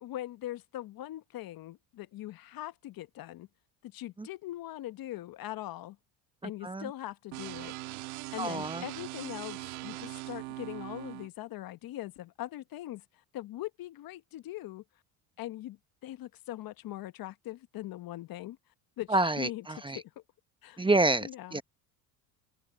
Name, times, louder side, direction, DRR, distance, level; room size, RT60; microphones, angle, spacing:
voice 1, 0.0-3.5 3.8-6.0 6.4-7.7 8.3-13.0 13.3-14.8 15.4-18.6 19.0-20.0 20.6-20.8 21.2-21.6, left 15 dB, 55° left, 1.1 m, -41 dB
voice 2, 6.4-6.9 8.4-8.8 19.1-20.0 20.8-21.6, right 2 dB, 10° right, 0.9 m, -28 dB
sound 1, 7.3-11.3, right 23 dB, 85° right, 1.9 m, -41 dB
open air
supercardioid pair, 85°, 42 cm